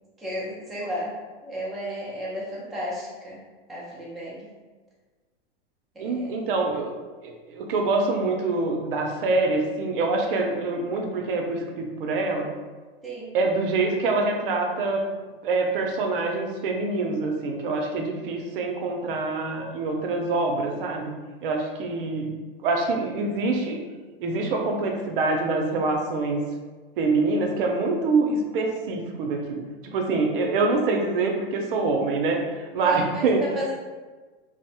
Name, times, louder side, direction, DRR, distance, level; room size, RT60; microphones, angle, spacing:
voice 1, 0.2-1.2 1.4-3.4 3.7-4.4 6.0-6.5 13.0-13.3 32.8-33.7, equal, ahead, -7 dB, 0.3 m, -33 dB
voice 2, 6.0-6.9 7.2-12.5 13.3-15.0 15.4-21.1 21.4-22.3 22.6-23.8 24.2-26.4 27.0-33.5, right 3 dB, 60° right, 2 dB, 0.6 m, -25 dB
2.5 x 2.0 x 2.7 m, 1.3 s
hypercardioid pair, 120°, 30 cm